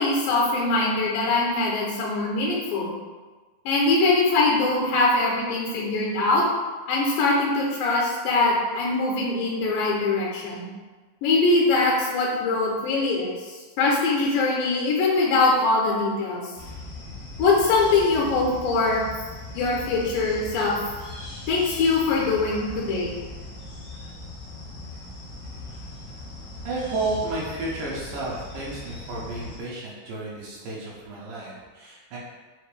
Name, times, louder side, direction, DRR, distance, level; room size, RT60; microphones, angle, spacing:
voice 1, 0.0-2.9 3.7-6.5 6.9-10.7 11.2-16.5 17.4-19.0 19.5-20.8 21.5-23.1, left 3 dB, 80° left, -3 dB, 2.3 m, -22 dB
sound 1, 16.5-29.6, left 2 dB, 65° left, 1.0 m, -39 dB
voice 2, 26.6-32.2, right 2 dB, 75° right, -6 dB, 2.3 m, -32 dB
5.8 x 2.6 x 3.2 m, 1.3 s
omnidirectional pair, 4.0 m